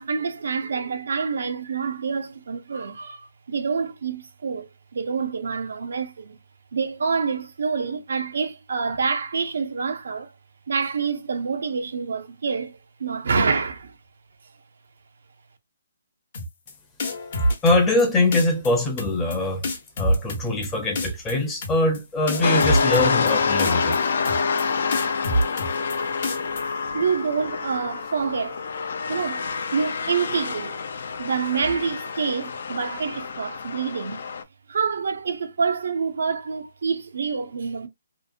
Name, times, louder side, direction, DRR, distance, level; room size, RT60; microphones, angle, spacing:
voice 1, 0.0-6.4 6.7-10.3 10.7-13.9 26.9-30.8 31.2-34.3 34.7-37.9, right 5 dB, 70° right, 0.5 m, -27 dB
sound 1, 16.3-16.7 17.0-18.0 18.3-18.7 19.0-19.4 19.6-20.7 20.9-21.3 21.6-22.0 22.3-23.3 23.6-24.0 24.2-24.6 24.9-25.9 26.2-26.6, equal, 45° left, 0.8 m, -26 dB
voice 2, 17.6-19.7 20.0-24.0, left 2 dB, 10° left, 0.6 m, -22 dB
sound 2, 22.4-34.4, left 5 dB, 60° left, 0.4 m, -27 dB
2.8 x 2.0 x 2.5 m
hypercardioid pair, 160°, 0 cm